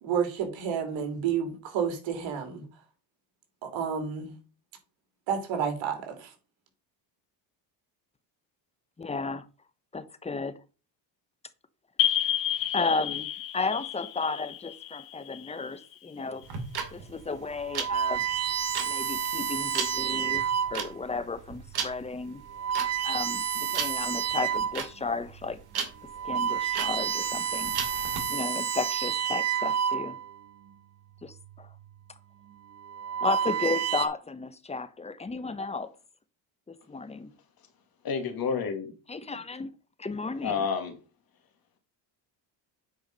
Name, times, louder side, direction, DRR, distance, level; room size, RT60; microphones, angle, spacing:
voice 1, 0.0-2.6 3.6-4.3 5.3-6.3, right 7 dB, 75° right, 3.3 m, -30 dB
voice 2, 9.0-9.5 9.9-10.6 12.7-16.5 16.9-18.3 18.9-20.4 20.7-22.4 23.0-25.6 26.2-27.7 28.3-30.2 31.2-31.7 33.2-35.9 36.7-37.3 39.1-39.7 40.0-40.6, left 3 dB, 15° left, 0.9 m, -33 dB
sound 1, 12.0-16.4, left 11 dB, 65° left, 1.5 m, -31 dB
sound 2, 16.4-28.2, right 6 dB, 55° right, 2.6 m, -36 dB
sound 3, 16.7-16.9 17.6-21.0 21.7-21.9 22.4-24.9 25.3-25.5 26.0-30.4 31.4-31.8 32.7-34.1, right 8 dB, 35° right, 1.2 m, -30 dB
voice 3, 38.0-38.9 40.4-40.9, left 6 dB, 50° left, 2.3 m, -29 dB
9.2 x 4.8 x 5.4 m
cardioid pair, 110°, 46 cm